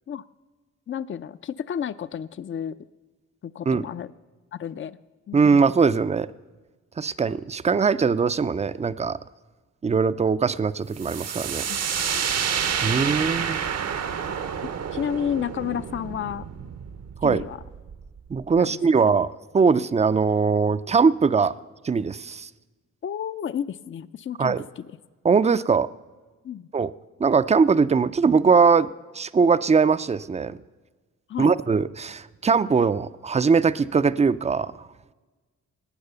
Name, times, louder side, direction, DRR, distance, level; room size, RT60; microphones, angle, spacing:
voice 1, 0.9-2.8 3.4-4.1 4.5-5.0 5.3-5.6 11.7-12.2 12.9-13.1 14.9-16.4 17.2-17.6 18.6-19.1 23.0-24.9 26.4-26.7 31.3-31.5, left 9 dB, 40° left, 16 dB, 0.5 m, -32 dB
voice 2, 5.3-6.3 7.0-9.2 9.8-11.6 12.8-13.6 17.2-17.4 18.3-19.3 19.5-21.5 21.8-22.5 24.4-24.6 25.2-25.9 26.7-26.9 27.2-28.9 29.1-30.6 31.4-34.7, right 5 dB, 20° right, 15 dB, 0.4 m, -21 dB
sound 1, 11.0-18.6, right 7 dB, 55° right, 0.8 m, -29 dB
18.5 x 8.9 x 6.8 m, 1.3 s
wide cardioid pair, 120°, 30 cm